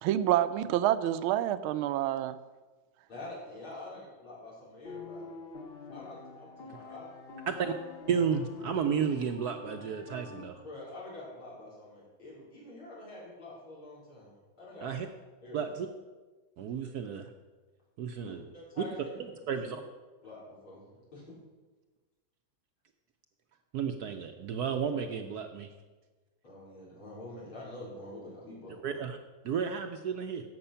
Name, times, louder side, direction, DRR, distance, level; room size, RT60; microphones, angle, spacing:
voice 1, 0.0-2.4, right 12 dB, 85° right, 1.4 m, -27 dB
voice 2, 3.1-5.3 5.9-7.1 10.6-14.9 15.4-15.7 18.2-19.1 19.3-19.8 20.2-20.8 21.1-21.4 26.4-29.0, left 2 dB, 90° left, 5.0 m, -46 dB
sound 1, 4.8-10.4, left 4 dB, 50° left, 0.7 m, -46 dB
voice 3, 8.1-10.6 14.8-15.1 15.5-15.9 16.6-17.3 18.0-18.4 18.8-18.9 19.1-19.8 23.7-25.7 28.8-29.2 29.4-30.4, right 7 dB, 70° right, 0.9 m, -32 dB
11.0 x 7.8 x 5.6 m
omnidirectional pair, 2.2 m